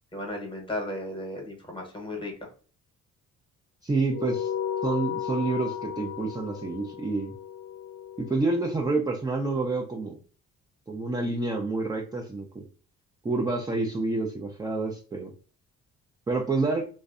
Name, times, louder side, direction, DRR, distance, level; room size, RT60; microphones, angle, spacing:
voice 1, 0.1-2.5, left 1 dB, 15° left, 1 dB, 0.9 m, -35 dB
voice 2, 3.8-4.5 4.8-7.3 8.2-10.2 10.9-12.6 13.2-15.3 16.3-16.9, right 3 dB, 15° right, 0 dB, 0.4 m, -28 dB
sound 1, 4.1-8.9, left 9 dB, 55° left, 0.5 m, -34 dB
2.5 x 2.1 x 2.3 m, 0.39 s
cardioid pair, 90°, 30 cm